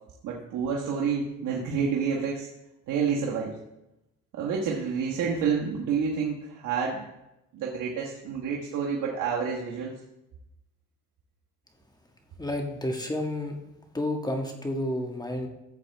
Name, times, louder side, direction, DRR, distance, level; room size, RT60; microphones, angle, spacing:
voice 1, 0.2-2.5 2.9-3.6 4.3-7.0 7.5-9.9, right 6 dB, 85° right, -3 dB, 1.4 m, -29 dB
voice 2, 12.4-13.6 13.9-15.5, left 1 dB, 15° left, 2 dB, 1.7 m, -30 dB
14.5 x 7.7 x 3.4 m, 0.92 s
cardioid pair, 90°, 30 cm